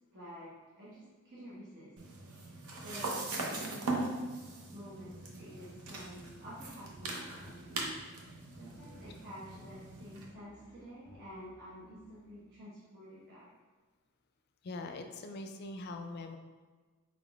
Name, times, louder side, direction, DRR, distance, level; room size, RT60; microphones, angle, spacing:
voice 1, 0.1-1.9 2.4-4.2 4.7-13.5, equal, 50° right, -10 dB, 1.0 m, -50 dB
sound 1, 2.0-10.3, right 2 dB, 80° right, 0.7 m, -40 dB
sound 2, 4.8-12.3, left 1 dB, 10° left, 0.7 m, -61 dB
voice 2, 14.6-16.4, left 2 dB, 45° left, 6 dB, 0.3 m, -42 dB
4.9 x 3.6 x 2.4 m, 1.4 s
head